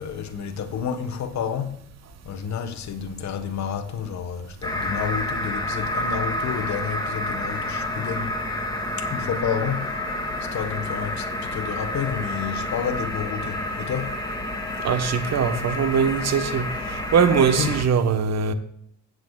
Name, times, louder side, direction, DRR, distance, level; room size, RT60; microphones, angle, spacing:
voice 1, 0.0-1.8 2.2-8.3 9.0-10.0 10.4-14.1 17.6-17.7, left 7 dB, 65° left, 1.3 m, -30 dB
sound 1, 4.6-17.8, left 1 dB, 15° left, 2.3 m, -29 dB
voice 2, 14.8-18.5, right 6 dB, 60° right, 1.2 m, -22 dB
16.0 x 8.2 x 2.4 m
cardioid pair, 90°, 30 cm